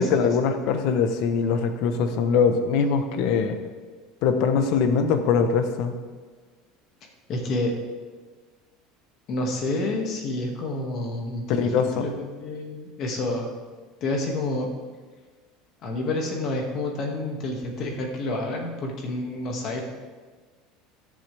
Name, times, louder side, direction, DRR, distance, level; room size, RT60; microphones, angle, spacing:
voice 1, 0.0-3.6 4.2-5.9 11.5-12.1, left 5 dB, 55° left, 7 dB, 1.1 m, -22 dB
voice 2, 7.3-7.7 9.3-13.5 14.0-14.7 15.8-19.8, left 2 dB, 40° left, 1 dB, 2.1 m, -29 dB
21.0 x 7.4 x 3.5 m, 1.4 s
cardioid pair, 160°, 0 cm